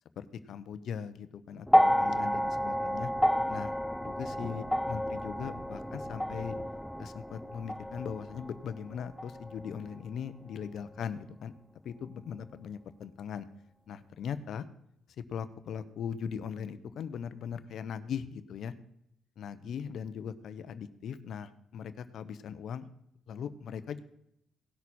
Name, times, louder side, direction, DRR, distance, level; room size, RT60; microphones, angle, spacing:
voice 1, 0.2-3.1 3.5-3.7 4.0-6.5 7.0-11.5 11.8-13.5 13.9-14.7 15.3-18.7 19.4-22.9 23.3-24.0, left 7 dB, 70° left, 12 dB, 0.8 m, -39 dB
sound 1, 1.7-10.0 11.1-11.2, equal, ahead, 0.5 m, -30 dB
18.0 x 6.3 x 4.3 m, 0.78 s
cardioid pair, 90°, 0 cm